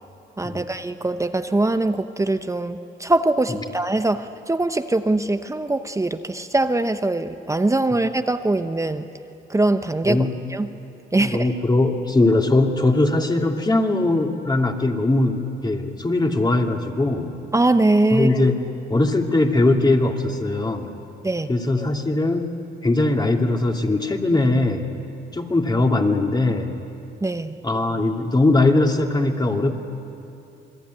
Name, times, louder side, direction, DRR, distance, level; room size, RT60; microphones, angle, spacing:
voice 1, 0.4-9.1 9.5-10.2 10.5-10.7 11.1-11.5 17.5-18.3 21.2-21.5 27.2-27.6, right 2 dB, 15° right, 9 dB, 0.9 m, -22 dB
voice 2, 10.0-10.3 11.2-17.3 18.1-18.6 18.9-20.9 21.5-22.5 22.8-24.8 25.3-26.7 27.6-29.7, left 2 dB, 20° left, 2 dB, 2.5 m, -20 dB
28.5 x 21.0 x 9.4 m, 2.8 s
cardioid pair, 90°, 20 cm